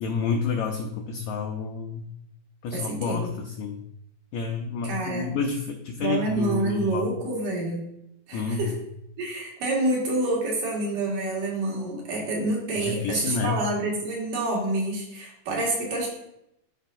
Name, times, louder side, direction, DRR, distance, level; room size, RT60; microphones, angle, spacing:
voice 1, 0.0-2.1 2.6-3.8 4.3-7.1 8.3-8.8 12.8-13.7, left 5 dB, 85° left, 3 dB, 1.6 m, -29 dB
voice 2, 2.7-3.3 4.8-5.3 6.0-7.8 8.3-8.8 9.2-16.1, right 2 dB, 65° right, -3 dB, 3.2 m, -28 dB
12.5 x 4.9 x 2.6 m, 0.79 s
omnidirectional pair, 4.0 m